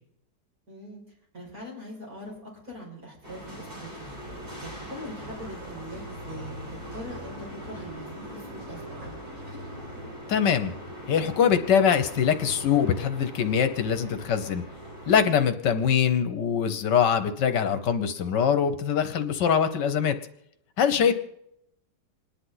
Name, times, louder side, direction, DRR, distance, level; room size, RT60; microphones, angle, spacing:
voice 1, 0.7-1.0 1.3-4.1 4.6-7.4 7.6-8.8 20.9-21.1, equal, 55° right, -4 dB, 6.6 m, -42 dB
sound 1, 3.2-15.2, equal, 30° right, 5.4 m, -41 dB
sound 2, 4.2-10.0, right 1 dB, 80° right, 8.1 m, -49 dB
voice 2, 10.3-10.7 11.1-14.6 15.1-20.2 20.8-21.1, left 7 dB, 75° left, 10 dB, 1.6 m, -23 dB
27.5 x 10.5 x 4.0 m, 0.80 s
omnidirectional pair, 1.9 m